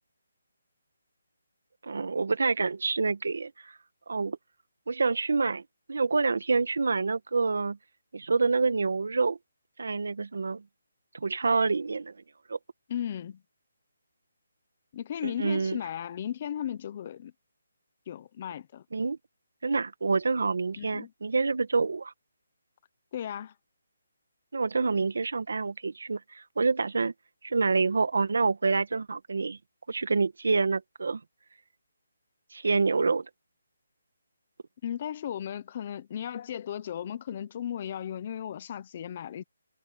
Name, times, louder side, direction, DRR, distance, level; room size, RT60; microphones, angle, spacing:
voice 1, 1.8-3.7 4.1-4.4 4.9-5.6 5.9-7.8 8.1-9.4 9.8-10.6 11.1-12.1 12.5-12.6 15.2-15.8 18.9-19.2 19.6-22.1 24.5-27.1 27.4-29.6 29.9-31.2 32.5-33.3, right 4 dB, 70° right, 1.8 m, -27 dB
voice 2, 12.9-13.4 14.9-17.3 18.1-18.8 20.8-21.1 23.1-23.5 34.8-39.4, left 10 dB, 30° left, 0.9 m, -35 dB
hypercardioid pair, 175°, 0 cm